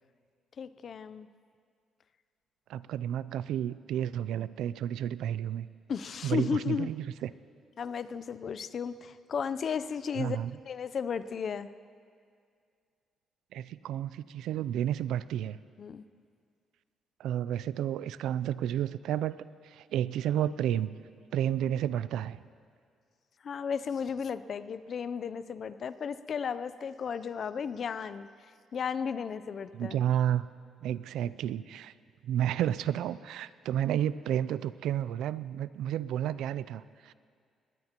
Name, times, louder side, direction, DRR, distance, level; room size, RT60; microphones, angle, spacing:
voice 1, 0.6-1.3 5.9-6.9 7.8-10.4 10.6-11.7 15.8-16.0 23.4-28.3 28.7-30.0, left 6 dB, 55° left, 14 dB, 0.5 m, -34 dB
voice 2, 2.7-5.7 6.2-7.3 10.2-10.5 13.5-15.6 17.2-19.4 19.6-20.9 21.3-22.4 29.7-30.5 30.8-31.9 32.2-37.1, right 11 dB, 85° right, 17 dB, 0.4 m, -31 dB
20.5 x 18.5 x 3.0 m, 2.2 s
cardioid pair, 90°, 0 cm